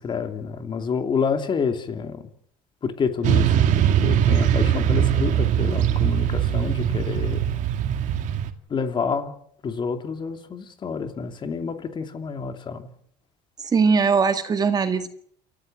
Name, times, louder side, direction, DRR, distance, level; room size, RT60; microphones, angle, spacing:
voice 1, 0.0-2.3 2.8-7.6 8.7-9.3 9.6-12.9, left 5 dB, 35° left, 7 dB, 2.8 m, -28 dB
Motorcycle / Traffic noise roadway noise, 3.2-8.5, right 10 dB, 60° right, 2.3 m, -21 dB
voice 2, 13.6-15.1, right 5 dB, 25° right, 8 dB, 2.0 m, -20 dB
28.5 x 14.5 x 7.9 m, 0.65 s
cardioid pair, 120°, 15 cm